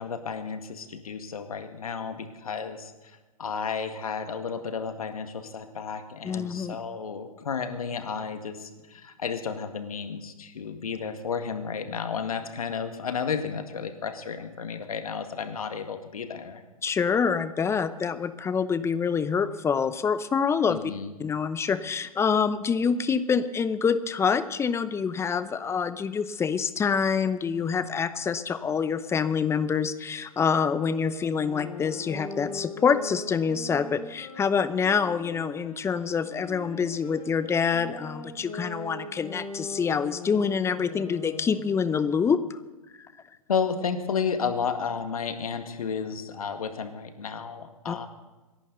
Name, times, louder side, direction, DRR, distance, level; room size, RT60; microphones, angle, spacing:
voice 1, 0.0-16.6 20.7-21.1 43.5-48.1, left 6 dB, 75° left, 7 dB, 1.9 m, -32 dB
voice 2, 6.2-6.8 16.8-20.8 21.2-42.6 47.9-48.0, left 6 dB, 15° left, 13 dB, 0.8 m, -26 dB
sound 1, 30.6-35.8 36.3-41.9, left 3 dB, 35° left, 6.1 m, -41 dB
27.5 x 11.5 x 4.0 m, 1.2 s
hypercardioid pair, 115°, 18 cm